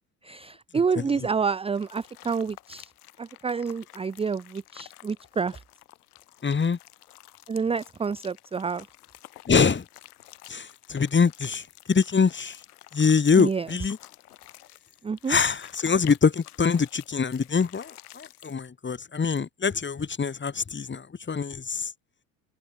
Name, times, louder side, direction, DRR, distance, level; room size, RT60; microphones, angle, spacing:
voice 1, 0.2-2.9 3.2-5.6 7.5-8.8 13.4-13.7 15.0-15.4, right 5 dB, 15° right, 0.7 m, -28 dB
sound 1, 1.7-18.7, left 15 dB, 80° left, 7.0 m, -50 dB
voice 2, 6.4-6.8 9.5-9.8 10.5-12.6 12.9-14.0 15.3-21.9, left 5 dB, 25° left, 3.8 m, -24 dB
hypercardioid pair, 70°, 45 cm